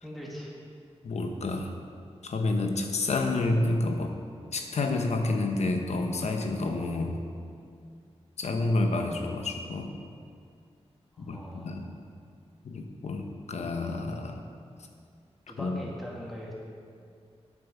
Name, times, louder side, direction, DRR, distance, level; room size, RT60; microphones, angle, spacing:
voice 1, 0.0-0.5 11.1-11.8 15.5-16.6, equal, ahead, -4 dB, 2.0 m, -41 dB
voice 2, 1.0-1.7 2.2-4.1 4.5-7.2 8.4-9.9 11.2-11.9 12.6-14.4 15.6-15.7, left 2 dB, 90° left, 4 dB, 1.0 m, -29 dB
8.7 x 8.0 x 6.0 m, 2.3 s
wide cardioid pair, 125°, 11 cm